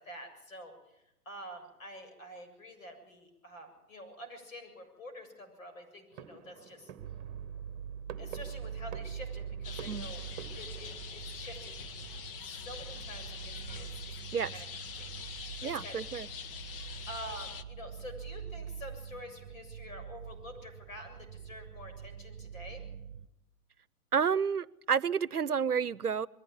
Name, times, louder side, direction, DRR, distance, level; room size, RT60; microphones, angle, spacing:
voice 1, 0.0-6.9 8.2-10.2 10.5-11.7 12.4-14.1 14.5-14.7 15.0-16.2 17.1-22.9, equal, 60° left, 7.6 m, -48 dB
sound 1, 6.1-11.1, right 8 dB, 25° right, 1.5 m, -49 dB
sound 2, 7.0-23.3, right 8 dB, 40° right, 1.1 m, -44 dB
sound 3, 9.6-17.6, left 7 dB, 40° left, 1.2 m, -44 dB
voice 2, 15.6-16.3 24.1-26.3, right 6 dB, 85° right, 0.8 m, -30 dB
22.0 x 15.5 x 9.6 m
figure-of-eight pair, 125°, 45 cm